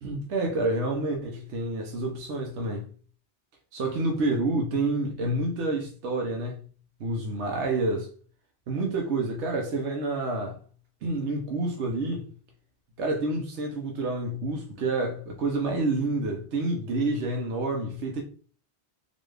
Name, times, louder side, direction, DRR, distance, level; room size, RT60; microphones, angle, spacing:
voice 1, 0.0-2.9 3.7-6.6 7.0-8.1 8.7-10.6 11.0-12.3 13.0-18.2, right 2 dB, 85° right, 1.1 m, -28 dB
4.0 x 2.4 x 3.2 m
omnidirectional pair, 1.1 m